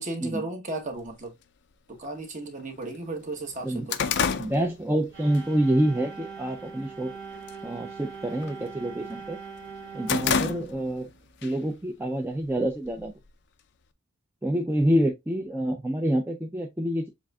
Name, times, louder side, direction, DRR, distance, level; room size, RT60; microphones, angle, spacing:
voice 1, 0.0-1.4 1.9-4.0, right 2 dB, 40° right, 1.0 m, -35 dB
sound 1, 1.0-1.1 2.0-2.1 2.6-2.7 3.0-5.4 5.8-6.1 6.6-7.1 7.4-7.7 8.0-9.2 9.6-11.1 11.4-11.5 12.4-13.3, left 6 dB, 55° left, 0.5 m, -29 dB
voice 2, 4.4-7.1 7.6-9.4 9.9-11.1 11.4-13.1 14.4-17.1, right 1 dB, 10° right, 0.5 m, -27 dB
sound 2, 5.1-11.9, right 5 dB, 60° right, 1.7 m, -42 dB
7.2 x 2.6 x 2.3 m
head